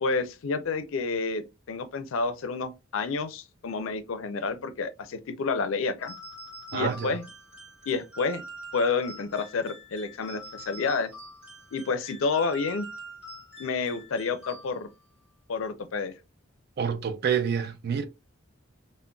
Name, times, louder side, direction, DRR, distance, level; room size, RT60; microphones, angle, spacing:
voice 1, 0.0-6.1 6.7-7.3 7.9-8.4 8.7-11.1 11.7-12.9 13.6-14.9 15.5-16.1, left 4 dB, 70° left, 0.4 m, -29 dB
sound 1, 6.0-15.1, right 1 dB, 5° right, 1.0 m, -45 dB
voice 2, 6.7-7.2 16.8-18.1, right 7 dB, 50° right, 0.4 m, -28 dB
3.7 x 2.1 x 2.2 m
head